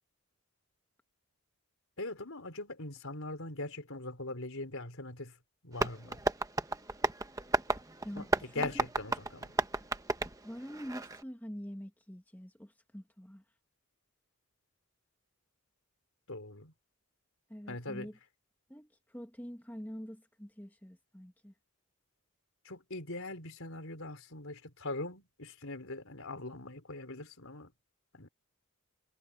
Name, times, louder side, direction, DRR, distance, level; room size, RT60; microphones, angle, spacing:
voice 1, 2.0-5.4 5.6-6.2 8.1-9.6 16.3-16.7 17.7-18.1 22.6-27.7 28.1-28.3, left 2 dB, 65° left, 4.4 m, -41 dB
Tap, 5.7-11.2, right 2 dB, 15° right, 1.1 m, -34 dB
voice 2, 8.0-8.9 10.4-13.4 17.5-18.2 18.7-21.5, equal, 10° left, 1.9 m, -45 dB
head